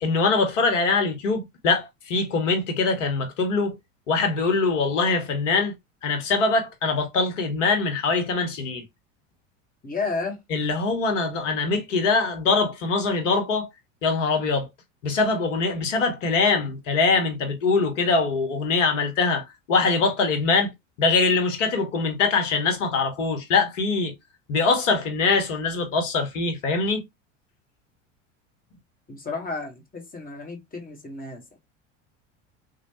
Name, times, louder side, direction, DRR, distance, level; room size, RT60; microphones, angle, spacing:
voice 1, 0.0-3.8 4.1-5.7 6.0-8.8 10.5-13.7 14.0-14.7 15.0-20.7 21.0-24.1 24.5-27.0, left 4 dB, 75° left, 1.0 m, -23 dB
voice 2, 9.8-10.4 29.1-31.6, left 3 dB, 20° left, 1.3 m, -32 dB
3.0 x 2.2 x 2.8 m
hypercardioid pair, 75°, 38 cm